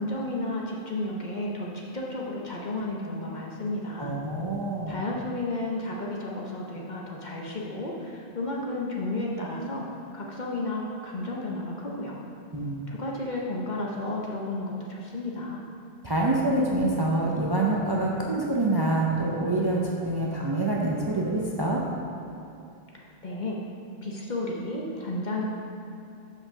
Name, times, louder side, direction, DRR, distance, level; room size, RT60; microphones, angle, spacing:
voice 1, 0.0-4.1 4.9-9.8 10.1-12.1 12.9-15.6 23.2-23.6 24.0-25.4, left 2 dB, 50° left, -3 dB, 0.9 m, -32 dB
voice 2, 4.0-5.0 12.5-12.9 16.0-19.8 20.1-21.8, right 2 dB, 30° right, -3 dB, 0.5 m, -26 dB
5.8 x 5.1 x 6.4 m, 2.5 s
omnidirectional pair, 1.1 m